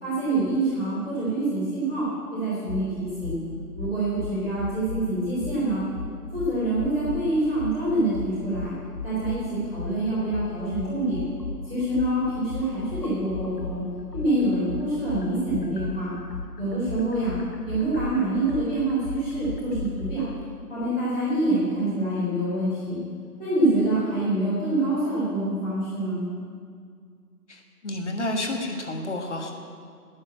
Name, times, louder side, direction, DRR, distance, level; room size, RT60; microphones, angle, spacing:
voice 1, 0.0-3.4 3.7-5.8 6.3-8.7 9.0-11.2 11.6-13.8 14.1-16.2 16.6-17.4 17.6-20.3 20.7-23.0 23.4-26.2, right 1 dB, 5° left, -16 dB, 1.1 m, -26 dB
sound 1, 2.7-2.9 3.2-3.4 3.8-5.0 5.4-5.6 6.0-7.2 7.6-7.8 8.1-9.4 9.8-13.8 14.1-20.1, left 3 dB, 80° left, 1.7 m, -35 dB
voice 2, 27.5-29.5, left 1 dB, 45° left, 3 dB, 1.5 m, -30 dB
10.0 x 9.3 x 8.6 m, 2.1 s
figure-of-eight pair, 165°, 49 cm